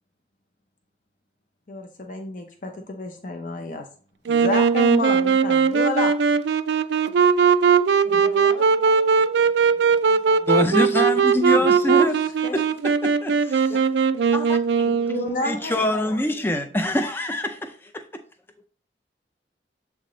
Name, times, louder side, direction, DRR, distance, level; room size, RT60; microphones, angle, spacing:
voice 1, 1.7-3.9 4.3-6.1 11.4-12.1 12.4-12.6 14.9-15.8 16.1-16.2, left 2 dB, 45° left, 0.7 m, -30 dB
Wind instrument woodwind instrument, 4.3-15.4, right 6 dB, 80° right, 0.4 m, -19 dB
voice 2, 8.0-10.6 14.9-16.8, left 2 dB, 90° left, 1.9 m, -43 dB
voice 3, 10.5-13.9 14.3-14.9 15.4-18.1, left 1 dB, 10° left, 0.4 m, -25 dB
7.4 x 3.5 x 3.8 m
head